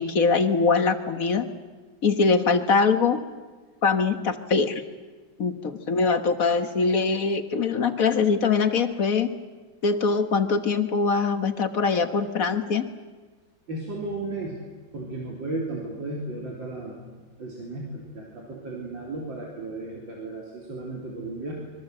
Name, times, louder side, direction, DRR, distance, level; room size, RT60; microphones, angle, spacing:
voice 1, 0.0-1.5 2.0-3.2 3.8-4.8 5.4-9.3 9.8-12.9, left 4 dB, 50° left, 9 dB, 1.6 m, -23 dB
voice 2, 13.7-14.5 14.9-17.0 17.4-21.5, right 2 dB, 85° right, -2 dB, 4.0 m, -34 dB
26.5 x 23.0 x 7.7 m, 1.3 s
omnidirectional pair, 2.0 m